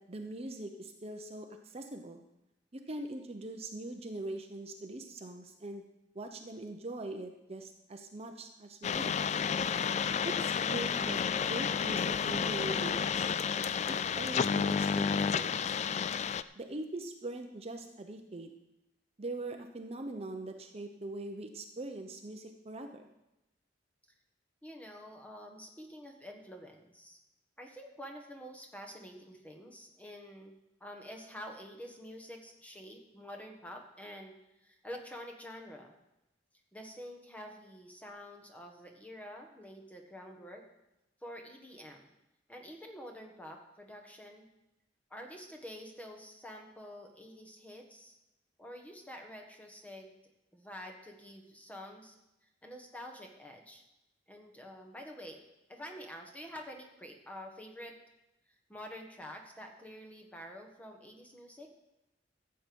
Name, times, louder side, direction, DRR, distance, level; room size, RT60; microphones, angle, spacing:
voice 1, 0.0-2.2 2.7-5.8 6.1-9.1 10.2-13.3 13.9-15.6 16.6-18.5 19.2-23.1, right 2 dB, 35° right, 5 dB, 0.8 m, -42 dB
sound 1, 8.8-16.4, left 6 dB, 40° left, 0.3 m, -31 dB
voice 2, 24.6-27.2 27.6-30.5 30.8-34.4 34.6-36.0 36.7-40.6 41.2-42.1 42.5-44.5 45.1-48.2 48.6-50.1 50.5-52.1 52.6-53.8 54.3-55.4 55.7-58.0 58.7-61.7, equal, 10° left, 2 dB, 1.5 m, -48 dB
14.5 x 7.8 x 5.3 m, 0.92 s
head